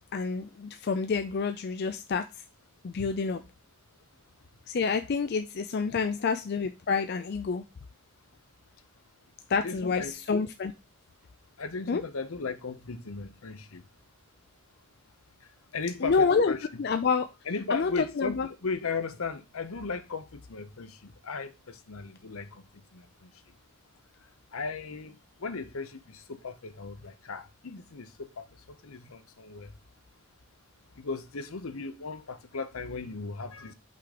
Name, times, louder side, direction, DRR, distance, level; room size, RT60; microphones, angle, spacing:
voice 1, 0.1-2.3 2.8-3.4 4.7-7.6 9.5-10.7 11.9-12.0 16.0-16.5 16.8-17.3 17.7-17.9 18.2-18.5, left 5 dB, 45° left, 0.4 m, -28 dB
voice 2, 9.5-10.1 11.6-13.8 15.7-16.8 17.5-22.5 22.9-23.0 24.5-25.2 25.4-28.4 28.8-29.7 31.0-33.7, left 4 dB, 70° left, 0.7 m, -36 dB
5.7 x 3.7 x 4.9 m
head